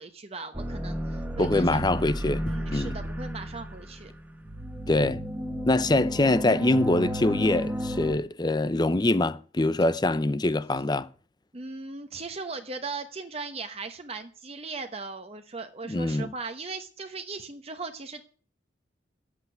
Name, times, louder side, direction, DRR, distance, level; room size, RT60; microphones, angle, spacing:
voice 1, 0.0-1.8 2.5-4.1 11.5-18.2, right 3 dB, 35° right, 1.0 m, -38 dB
sound 1, 0.5-8.1, equal, 10° right, 1.4 m, -33 dB
voice 2, 1.4-3.0 4.9-5.2 5.7-11.1 15.8-16.3, left 2 dB, 25° left, 0.6 m, -24 dB
10.0 x 8.2 x 9.2 m
head